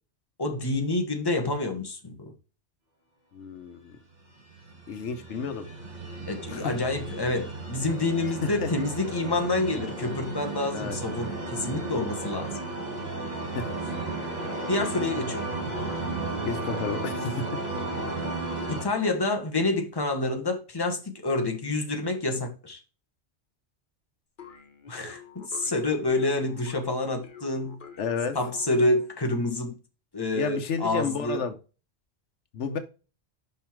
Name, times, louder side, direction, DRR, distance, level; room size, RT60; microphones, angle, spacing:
voice 1, 0.4-2.3 6.3-12.6 14.7-15.4 18.7-22.8 24.9-27.8 28.3-29.7 30.1-31.4, left 2 dB, 20° left, 1.3 m, -28 dB
voice 2, 3.3-4.0 4.9-5.6 6.5-6.7 8.4-8.7 10.7-11.0 13.5-13.7 16.5-17.3 28.0-28.4 30.4-31.6 32.5-32.8, left 6 dB, 90° left, 1.2 m, -31 dB
sound 1, 4.5-18.8, right 2 dB, 40° right, 1.9 m, -34 dB
sound 2, 24.4-29.2, left 7 dB, 50° left, 1.1 m, -48 dB
5.7 x 5.5 x 4.5 m
omnidirectional pair, 1.2 m